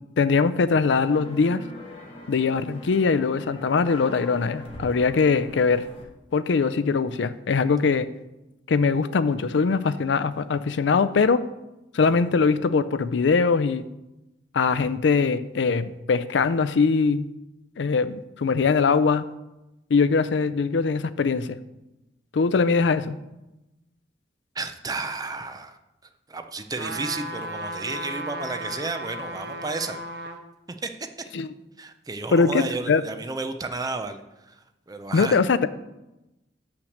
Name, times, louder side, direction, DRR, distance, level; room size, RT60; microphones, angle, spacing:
voice 1, 0.2-1.6 2.3-5.8 6.3-8.1 8.7-11.4 11.9-13.9 14.5-17.2 17.8-19.3 19.9-21.6 22.3-23.2 31.3-31.5 32.3-33.0 35.1-35.7, left 4 dB, 75° left, 14 dB, 0.4 m, -22 dB
sound 1, 1.0-6.0, left 1 dB, 30° left, 1.3 m, -42 dB
voice 2, 24.5-25.8 26.3-30.0 30.8-30.9 31.8-35.4, right 3 dB, 20° right, 8 dB, 0.5 m, -32 dB
sound 2, 26.8-30.4 30.9-31.0, right 1 dB, 65° right, 0.8 m, -35 dB
6.3 x 5.9 x 6.6 m, 0.98 s
head